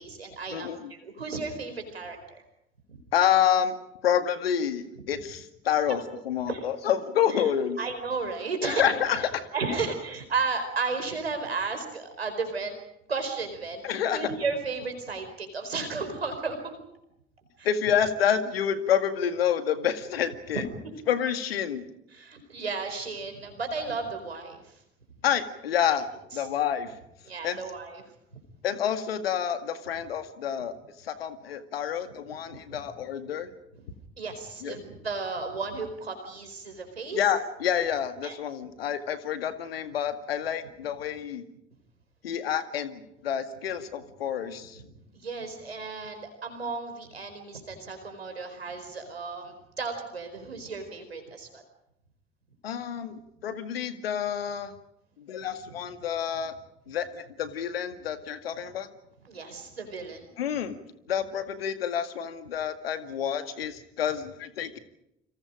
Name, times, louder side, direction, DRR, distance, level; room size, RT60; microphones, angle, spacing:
voice 1, 0.0-2.4 2.9-3.0 5.9-6.0 6.5-6.6 7.3-7.4 7.8-8.9 9.5-12.7 13.1-13.8 14.1-16.8 17.6-17.7 20.5-20.6 22.1-24.8 26.3-26.4 27.3-28.0 32.5-32.6 34.2-37.2 38.2-38.4 44.7-44.9 45.1-51.6 59.2-60.3, right 4 dB, 85° right, 6 dB, 4.6 m, -34 dB
voice 2, 0.5-0.9 3.1-3.8 4.0-7.8 8.6-9.5 13.8-14.3 17.6-20.6 21.1-21.8 25.2-26.1 26.3-27.0 27.4-27.6 28.6-33.5 34.6-34.8 37.1-41.4 42.2-44.8 52.6-54.7 55.2-56.5 56.9-58.9 60.4-64.8, left 9 dB, 75° left, 9 dB, 2.1 m, -28 dB
29.0 x 26.5 x 5.1 m, 0.81 s
figure-of-eight pair, 55°, 30 cm